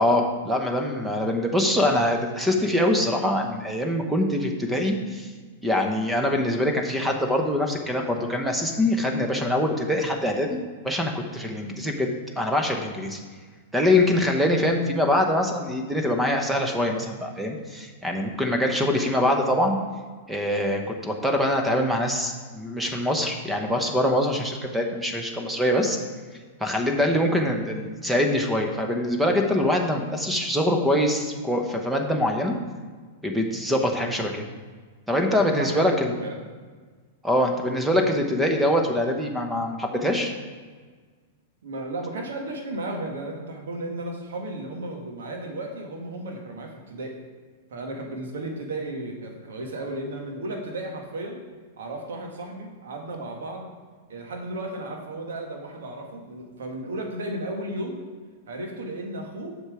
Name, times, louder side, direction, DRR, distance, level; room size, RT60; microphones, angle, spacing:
voice 1, 0.0-5.3 5.6-13.2 13.7-19.8 20.3-26.0 26.6-32.6 33.2-34.4 35.1-36.1 37.2-40.3, left 1 dB, 5° right, 3 dB, 1.1 m, -24 dB
voice 2, 35.5-36.4 41.6-47.2 47.7-51.4 51.8-53.7 54.1-58.0 58.5-59.6, right 1 dB, 75° right, 2 dB, 1.7 m, -34 dB
7.8 x 5.8 x 5.0 m, 1.5 s
hypercardioid pair, 115°, 0 cm